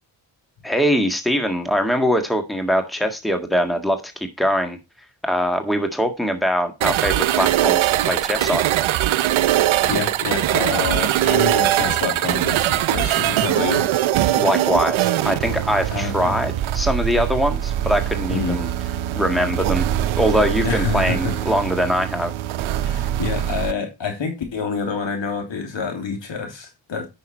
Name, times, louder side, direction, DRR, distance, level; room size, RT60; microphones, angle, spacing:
voice 1, 0.6-4.8 5.2-8.6 14.4-18.7 19.1-19.9 20.2-22.3, equal, ahead, 1.6 m, -22 dB
sound 1, 6.8-23.7, right 13 dB, 90° right, 0.7 m, -22 dB
voice 2, 9.8-14.4 15.9-16.3 18.3-18.6 20.6-21.3 22.8-27.1, left 5 dB, 70° left, 3.1 m, -27 dB
9.6 x 6.1 x 4.3 m
cardioid pair, 80°, 47 cm